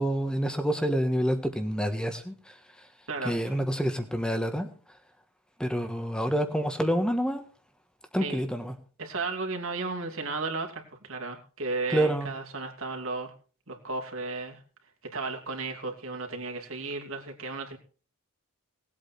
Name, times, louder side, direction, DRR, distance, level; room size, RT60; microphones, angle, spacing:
voice 1, 0.0-2.5 3.2-4.7 5.6-7.4 8.1-8.7 11.9-12.3, equal, 5° left, 7 dB, 1.4 m, -27 dB
voice 2, 3.1-3.5 8.2-8.4 9.0-13.3 13.7-14.6 15.1-17.8, right 3 dB, 60° right, 2 dB, 2.7 m, -34 dB
19.0 x 8.4 x 4.4 m, 0.39 s
head